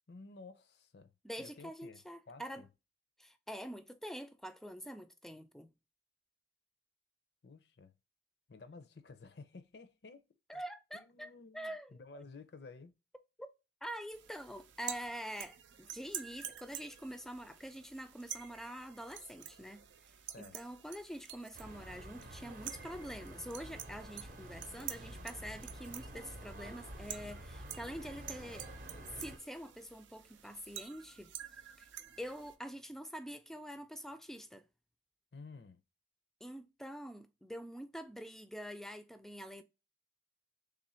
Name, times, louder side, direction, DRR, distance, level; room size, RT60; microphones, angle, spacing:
voice 1, 0.1-1.1 1.4-2.7 7.4-7.9 8.5-10.3 10.5-10.6 10.9-12.9 20.3-20.6 35.3-35.8, left 3 dB, 60° left, 0.5 m, -53 dB
voice 2, 1.2-2.6 3.2-5.7 10.5-12.2 13.4-13.5 13.8-19.8 20.4-28.7 29.2-31.3 31.8-31.9 32.2-34.6 36.4-39.6, equal, ahead, 0.3 m, -46 dB
sound 1, 14.1-32.6, right 10 dB, 80° right, 0.5 m, -49 dB
sound 2, 21.5-29.4, right 1 dB, 45° right, 0.7 m, -49 dB
3.3 x 2.5 x 4.2 m
head